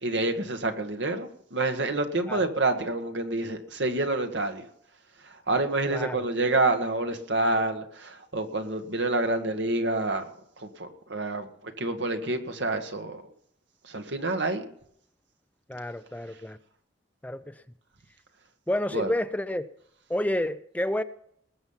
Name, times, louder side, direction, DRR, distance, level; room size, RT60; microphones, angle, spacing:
voice 1, 0.0-4.7 5.5-10.3 10.6-13.2 13.9-14.6 18.9-19.1, right 2 dB, 80° right, 1.7 m, -28 dB
voice 2, 5.9-6.2 15.7-16.6 17.2-17.5 18.7-19.7 20.1-21.0, left 1 dB, 10° left, 0.5 m, -29 dB
20.0 x 7.4 x 5.7 m
head